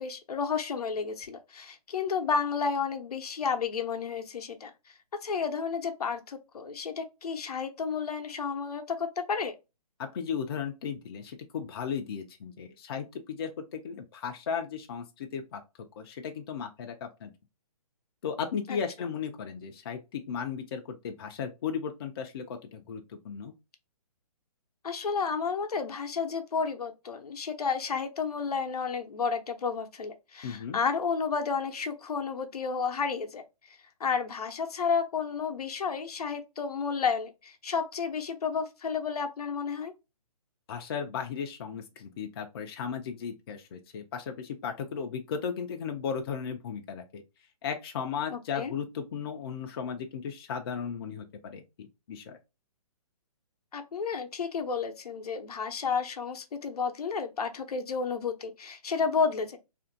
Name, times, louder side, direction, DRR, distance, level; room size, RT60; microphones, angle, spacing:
voice 1, 0.0-4.7 5.2-9.6 18.7-18.8 24.8-33.4 34.0-39.9 48.3-48.7 53.7-59.6, left 5 dB, 75° left, 0.7 m, -31 dB
voice 2, 10.0-15.6 16.0-17.3 18.2-23.5 30.4-30.8 40.7-47.2 47.6-52.4, left 7 dB, 40° left, 0.4 m, -36 dB
2.8 x 2.5 x 2.5 m
hypercardioid pair, 150°, 20 cm